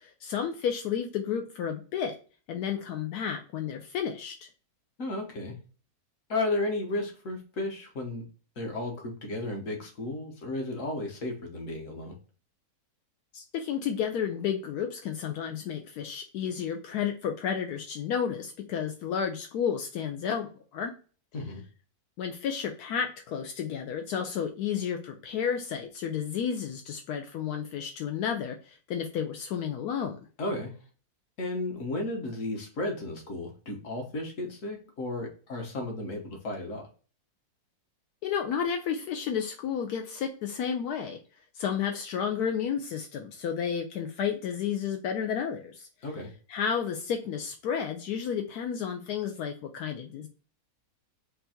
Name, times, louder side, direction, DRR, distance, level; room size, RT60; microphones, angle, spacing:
voice 1, 0.0-2.2 2.5-4.5 13.3-20.9 22.2-30.2 38.2-41.2 41.5-45.9 46.5-50.3, left 7 dB, 85° left, 4 dB, 1.1 m, -32 dB
voice 2, 5.0-5.5 6.3-8.2 8.6-12.1 21.3-21.6 30.4-30.7 31.4-36.9 46.0-46.3, left 2 dB, 55° left, 2 dB, 1.5 m, -33 dB
4.5 x 2.6 x 4.3 m, 0.38 s
omnidirectional pair, 1.6 m